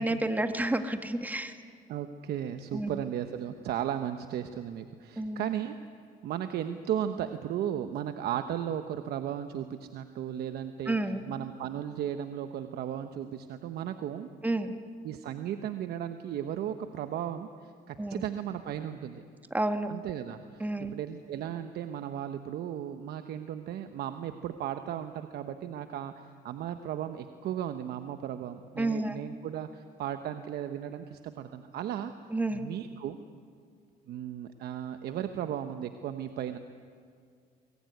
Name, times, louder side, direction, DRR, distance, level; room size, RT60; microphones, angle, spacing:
voice 1, 0.0-1.5 2.7-2.9 5.2-5.5 10.9-11.2 14.4-14.7 18.0-18.2 19.5-19.9 20.6-20.9 28.8-29.2 32.3-32.6, right 2 dB, 10° right, 7 dB, 1.7 m, -30 dB
voice 2, 1.9-5.8 6.2-14.3 15.0-19.2 19.9-32.1 32.5-33.2 34.1-36.6, right 10 dB, 70° right, 8 dB, 1.1 m, -35 dB
23.5 x 21.5 x 9.6 m, 2.2 s
cardioid pair, 110°, 17 cm